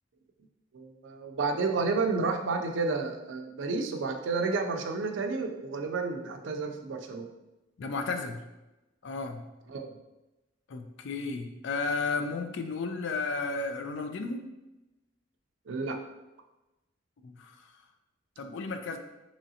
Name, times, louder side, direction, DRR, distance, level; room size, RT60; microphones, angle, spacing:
voice 1, 0.7-7.3 9.7-9.9 15.7-16.0, right 4 dB, 70° right, 4 dB, 0.4 m, -31 dB
voice 2, 7.8-8.4 9.0-9.4 10.7-14.4 17.2-17.6 18.4-19.0, left 4 dB, 65° left, 6 dB, 0.4 m, -33 dB
3.7 x 3.1 x 2.7 m, 1.0 s
head